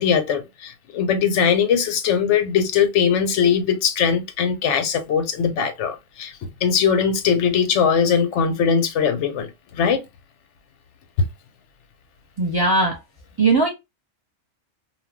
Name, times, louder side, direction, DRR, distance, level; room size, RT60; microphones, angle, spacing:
voice 1, 0.0-6.3 6.6-9.5 9.8-10.0, left 7 dB, 70° left, 0.8 m, -20 dB
voice 2, 12.4-13.0 13.4-13.7, right 3 dB, 20° right, 0.8 m, -18 dB
2.2 x 2.1 x 3.4 m
omnidirectional pair, 1.3 m